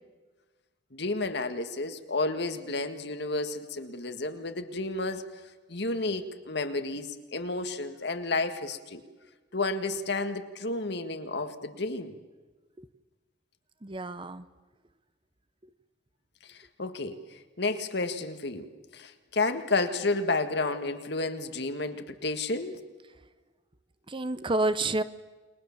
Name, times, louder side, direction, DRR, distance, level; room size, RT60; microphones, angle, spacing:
voice 1, 0.9-5.2 5.7-9.0 9.5-12.1 16.5-17.2 17.6-22.8, left 3 dB, 60° left, 8 dB, 1.8 m, -31 dB
voice 2, 13.8-14.4 24.1-25.0, right 2 dB, 25° right, 13 dB, 0.8 m, -29 dB
29.5 x 22.0 x 7.3 m, 1.3 s
head